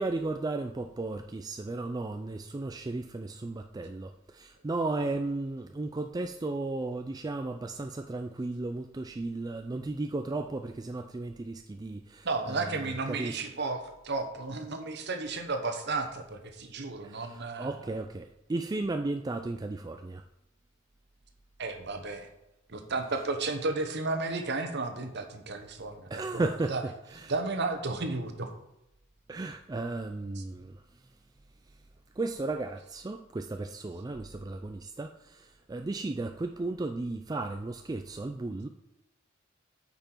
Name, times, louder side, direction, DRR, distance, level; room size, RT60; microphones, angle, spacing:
voice 1, 0.0-13.4 17.0-20.2 26.1-27.3 29.3-30.8 32.2-38.7, right 2 dB, 20° right, 6 dB, 0.3 m, -35 dB
voice 2, 12.2-17.7 21.6-22.3 22.7-26.8 27.3-28.5 30.4-30.5, right 3 dB, 55° right, 6 dB, 1.0 m, -33 dB
8.7 x 5.5 x 4.5 m, 0.89 s
head